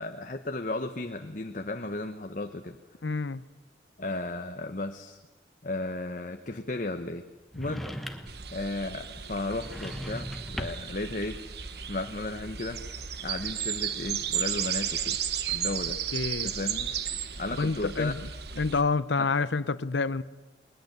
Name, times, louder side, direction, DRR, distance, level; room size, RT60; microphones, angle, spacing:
voice 1, 0.0-2.8 4.0-5.2 5.6-7.2 7.5-7.8 8.5-11.4 11.9-12.8 13.2-15.2 15.5-16.0 16.4-16.9 17.4-18.1 19.2-19.3, left 2 dB, 45° left, 0.9 m, -34 dB
voice 2, 3.0-3.4 16.1-16.5 17.6-18.2 18.6-20.2, left 4 dB, 75° left, 0.7 m, -28 dB
sound 1, 7.5-8.5 9.5-11.0, equal, ahead, 1.3 m, -38 dB
sound 2, 8.3-18.8, right 9 dB, 60° right, 1.2 m, -34 dB
21.0 x 21.0 x 8.0 m
head